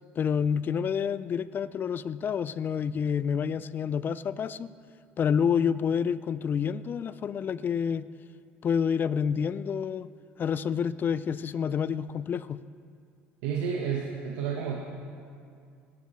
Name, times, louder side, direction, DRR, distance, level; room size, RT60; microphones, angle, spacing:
voice 1, 0.2-4.7 5.2-8.1 8.6-10.1 10.4-12.6, left 7 dB, 40° left, 17 dB, 0.4 m, -28 dB
voice 2, 13.4-14.8, right 7 dB, 80° right, -2 dB, 1.4 m, -30 dB
18.0 x 13.0 x 3.3 m, 2.3 s
supercardioid pair, 85°, 5 cm